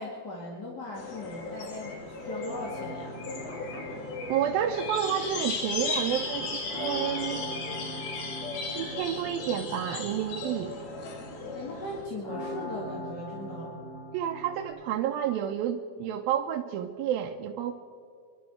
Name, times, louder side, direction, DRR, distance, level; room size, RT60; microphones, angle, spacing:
voice 1, 0.0-3.1 11.5-13.7, left 2 dB, 35° left, -3 dB, 2.0 m, -38 dB
sound 1, 1.0-12.0, left 3 dB, 90° left, 4.0 m, -36 dB
sound 2, 2.4-14.7, right 1 dB, 50° left, 6.6 m, -42 dB
Telephone, 3.4-4.5, left 3 dB, 70° left, 6.0 m, -43 dB
voice 2, 4.3-7.4 8.8-10.8 14.1-17.7, right 10 dB, 80° right, 3 dB, 2.4 m, -30 dB
25.0 x 12.0 x 4.4 m, 2.4 s
omnidirectional pair, 4.2 m